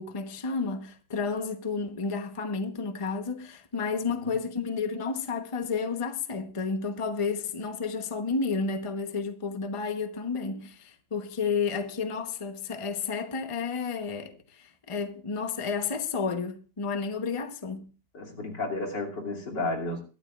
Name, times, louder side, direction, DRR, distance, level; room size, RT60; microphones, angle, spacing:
voice 1, 0.0-17.9, left 5 dB, 25° left, 0.9 m, -31 dB
voice 2, 18.1-20.0, left 2 dB, 90° left, 3.4 m, -32 dB
22.0 x 12.5 x 2.4 m
omnidirectional pair, 1.9 m